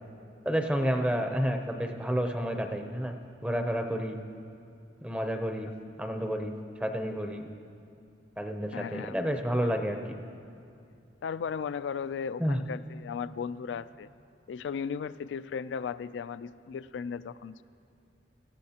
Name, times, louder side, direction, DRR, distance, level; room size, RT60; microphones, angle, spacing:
voice 1, 0.4-3.1 3.4-4.2 5.0-5.7 6.0-6.5 6.8-7.5 8.4-10.2 12.4-12.6, equal, 5° right, 5 dB, 0.6 m, -30 dB
voice 2, 8.7-9.7 11.2-14.1 14.5-17.6, left 6 dB, 80° left, 16 dB, 0.3 m, -36 dB
18.5 x 14.0 x 2.9 m, 2.5 s
head